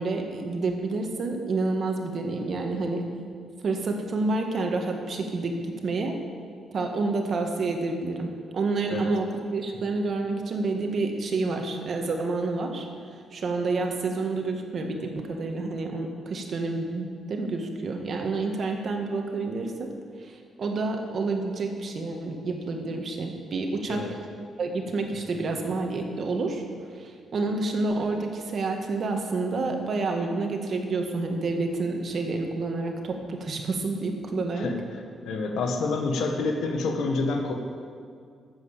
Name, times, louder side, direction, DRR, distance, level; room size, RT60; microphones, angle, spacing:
voice 1, 0.0-3.1 3.6-6.2 6.7-12.9 13.3-19.9 20.2-24.1 24.6-26.6 26.9-34.7, right 3 dB, 45° right, 3 dB, 1.6 m, -29 dB
voice 2, 35.2-37.5, left 3 dB, 80° left, 3 dB, 1.6 m, -27 dB
12.0 x 8.0 x 7.3 m, 2.2 s
cardioid pair, 135°, 0 cm